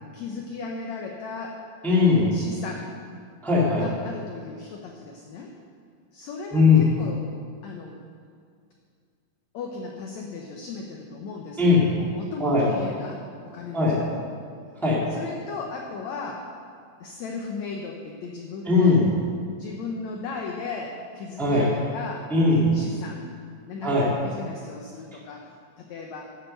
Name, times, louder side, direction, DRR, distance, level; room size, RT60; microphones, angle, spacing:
voice 1, 0.1-1.6 2.3-3.0 3.7-5.5 6.1-7.3 7.6-8.0 9.5-14.1 15.1-16.5 17.0-19.0 19.4-22.3 22.7-23.3 23.7-26.3, left 4 dB, 75° left, 0 dB, 1.7 m, -36 dB
voice 2, 1.8-2.3 3.4-3.8 6.5-6.8 11.6-11.9 12.4-12.6 13.7-14.0 14.7-15.0 18.6-19.0 21.4-21.7 22.3-22.7 23.8-24.1, left 4 dB, ahead, -6 dB, 1.5 m, -19 dB
11.0 x 7.9 x 6.7 m, 2.2 s
omnidirectional pair, 4.2 m